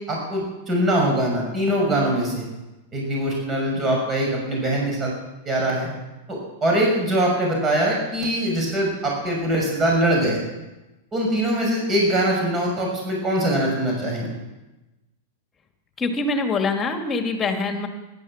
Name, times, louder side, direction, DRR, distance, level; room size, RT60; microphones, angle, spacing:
voice 1, 0.1-2.5 2.9-5.1 5.4-5.9 6.3-10.4 11.1-14.3, right 1 dB, 25° right, -1 dB, 6.2 m, -22 dB
voice 2, 16.0-17.9, left 3 dB, 25° left, 5 dB, 2.4 m, -24 dB
15.0 x 12.5 x 7.4 m, 1.1 s
hypercardioid pair, 100°, 0 cm